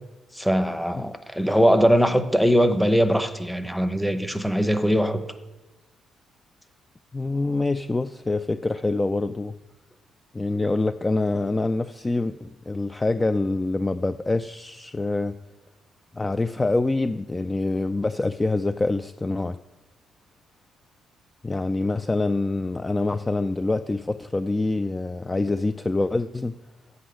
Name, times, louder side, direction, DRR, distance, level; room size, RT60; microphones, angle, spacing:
voice 1, 0.3-5.3, equal, ahead, 9 dB, 0.9 m, -21 dB
voice 2, 7.1-9.5 10.3-15.4 16.1-19.6 21.4-26.6, left 2 dB, 20° left, 11 dB, 0.4 m, -25 dB
8.2 x 6.2 x 7.7 m, 1.2 s
cardioid pair, 90°, 0 cm